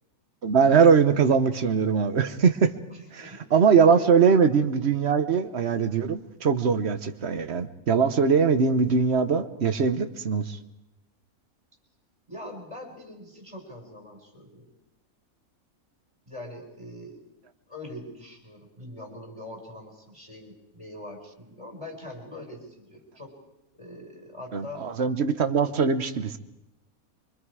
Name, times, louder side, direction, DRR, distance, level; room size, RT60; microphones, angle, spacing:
voice 1, 0.4-2.7 3.1-10.6 24.5-26.4, right 6 dB, 50° right, 10 dB, 1.2 m, -21 dB
voice 2, 2.9-3.5 3.9-4.2 12.3-14.7 16.3-17.2 17.7-23.4 23.7-24.9, left 1 dB, 20° right, 1 dB, 4.8 m, -42 dB
25.5 x 24.5 x 4.8 m, 0.91 s
omnidirectional pair, 1.5 m